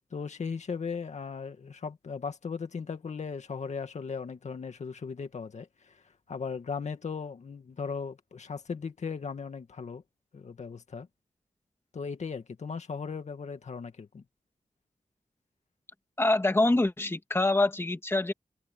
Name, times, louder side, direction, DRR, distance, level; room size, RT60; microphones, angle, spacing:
voice 1, 0.1-10.0 10.3-11.1 11.9-14.2, left 5 dB, 65° left, 2.2 m, -37 dB
voice 2, 16.2-18.3, left 2 dB, 20° left, 2.0 m, -25 dB
wide cardioid pair, 105°, 13 cm